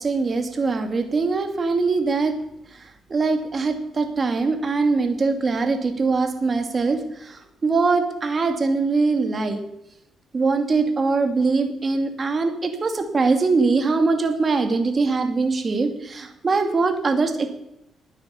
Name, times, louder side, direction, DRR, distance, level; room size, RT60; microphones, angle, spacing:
voice 1, 0.0-2.3 2.7-9.6 10.3-17.5, right 4 dB, 35° right, 6 dB, 2.5 m, -22 dB
13.0 x 9.6 x 7.2 m, 0.80 s
cardioid pair, 90°, 0 cm